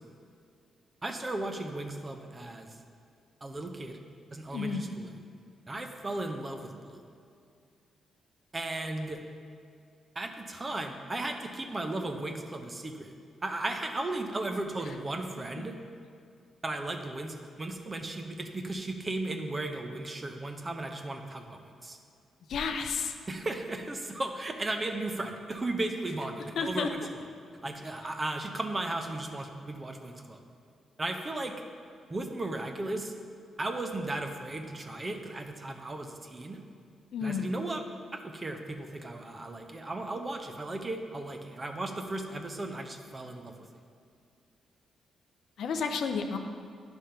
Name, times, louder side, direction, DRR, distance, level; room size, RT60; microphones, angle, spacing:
voice 1, 1.0-2.7 3.4-4.0 4.3-5.2 5.7-7.0 8.5-9.2 10.1-13.1 13.4-15.8 16.6-22.0 23.3-27.0 27.6-30.4 31.0-31.6 32.1-33.1 33.6-36.6 37.2-37.8 38.1-43.5, right 2 dB, 25° right, 5 dB, 0.7 m, -35 dB
voice 2, 4.5-4.8 22.5-23.1 26.6-26.9 37.1-37.5 45.6-46.4, left 5 dB, 75° left, 6 dB, 0.6 m, -31 dB
10.0 x 3.5 x 5.6 m, 2.4 s
cardioid pair, 90°, 0 cm